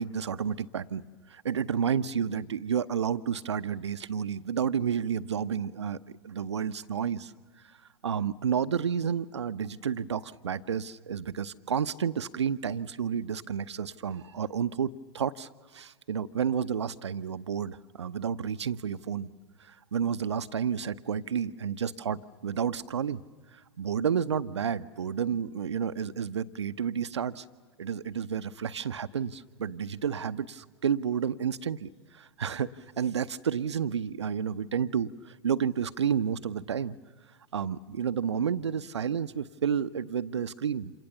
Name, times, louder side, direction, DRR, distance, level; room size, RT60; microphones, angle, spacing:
voice 1, 0.0-6.0 6.2-7.3 7.6-7.8 8.0-19.3 19.6-23.2 23.5-27.4 27.8-37.0 37.5-40.9, right 7 dB, 70° right, 12 dB, 0.7 m, -31 dB
29.0 x 27.0 x 7.0 m, 1.5 s
figure-of-eight pair, 105°, 15 cm